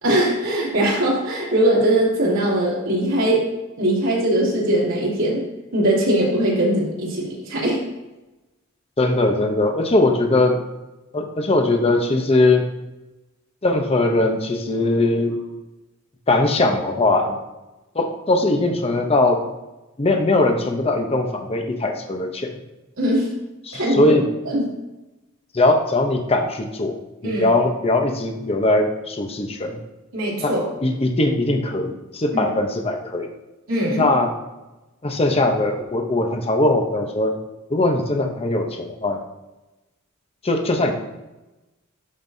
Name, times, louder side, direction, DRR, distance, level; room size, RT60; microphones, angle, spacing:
voice 1, 0.0-3.5 3.8-5.4 5.7-7.8 23.0-23.3 23.7-24.0 24.5-24.7 27.2-27.4 30.1-30.6 32.3-32.4 33.7-34.1, right 1 dB, 85° right, -5 dB, 2.7 m, -20 dB
voice 2, 9.0-10.6 11.1-12.7 13.6-15.4 16.3-17.4 17.9-19.4 20.0-22.5 23.7-24.3 25.5-26.9 27.2-29.8 30.4-30.5 30.8-33.3 34.0-34.3 35.0-37.4 37.7-39.2 40.4-40.9, left 2 dB, 30° left, 4 dB, 0.8 m, -20 dB
12.0 x 5.3 x 2.7 m, 1.0 s
head